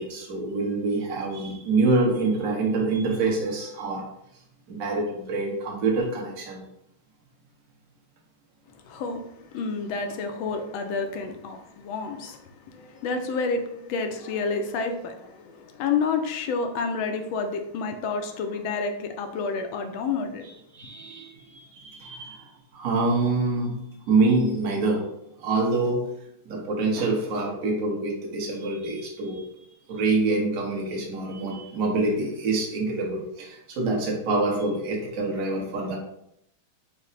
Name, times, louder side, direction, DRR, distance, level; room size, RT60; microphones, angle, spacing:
voice 1, 0.0-4.0 4.7-6.6 20.7-23.8 24.1-25.0 25.4-26.0 26.4-29.5 29.9-36.0, right 3 dB, 50° right, 1.2 m, -26 dB
voice 2, 8.9-20.5, left 4 dB, 80° left, 1.3 m, -29 dB
5.1 x 2.1 x 4.0 m
omnidirectional pair, 2.2 m